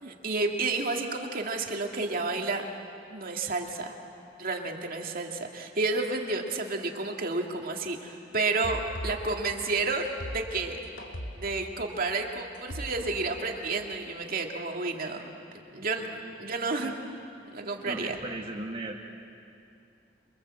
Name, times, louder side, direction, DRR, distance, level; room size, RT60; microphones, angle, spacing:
voice 1, 0.0-2.6 3.1-3.9 4.4-10.1 10.3-10.8 11.4-15.2 15.7-16.1 16.4-16.9 17.4-18.1, right 3 dB, 50° right, 2 dB, 2.3 m, -31 dB
sound 1, 8.6-13.6, equal, 80° left, 2.7 m, -40 dB
voice 2, 15.7-16.3 16.8-17.0 17.8-19.0, right 1 dB, 30° right, -1 dB, 1.7 m, -38 dB
28.5 x 23.5 x 7.8 m, 2.6 s
head